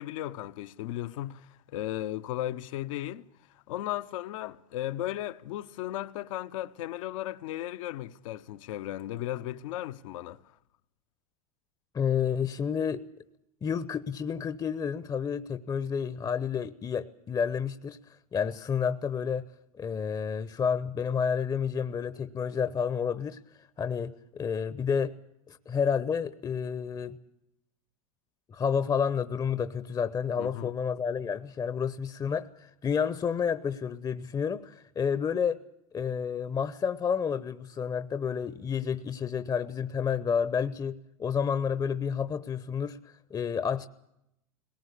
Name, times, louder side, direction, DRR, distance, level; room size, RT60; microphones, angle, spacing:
voice 1, 0.0-3.2 3.7-10.4 30.4-30.7, left 13 dB, 65° left, 0.9 m, -35 dB
voice 2, 11.9-13.0 13.6-18.0 18.3-19.4 19.7-23.4 23.8-25.1 25.5-27.2 28.5-35.6 35.9-43.9, left 7 dB, 20° left, 0.8 m, -30 dB
20.0 x 18.5 x 8.3 m
hypercardioid pair, 100°, 18 cm